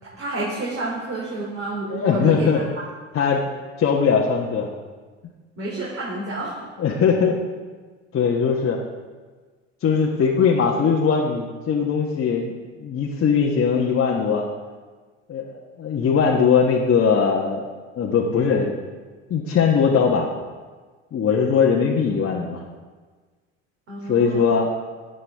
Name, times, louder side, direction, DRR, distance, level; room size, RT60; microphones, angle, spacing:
voice 1, 0.0-2.6 5.6-6.6 23.9-24.4, right 2 dB, 35° right, -5 dB, 2.9 m, -29 dB
voice 2, 1.9-2.6 3.1-3.4 3.8-4.7 6.8-7.4 8.1-8.8 9.8-14.5 15.3-17.6 17.9-18.7 19.3-20.3 21.1-22.6 24.1-24.7, left 6 dB, 40° left, -3 dB, 1.3 m, -20 dB
14.0 x 9.4 x 3.5 m, 1.4 s
hypercardioid pair, 70°, 35 cm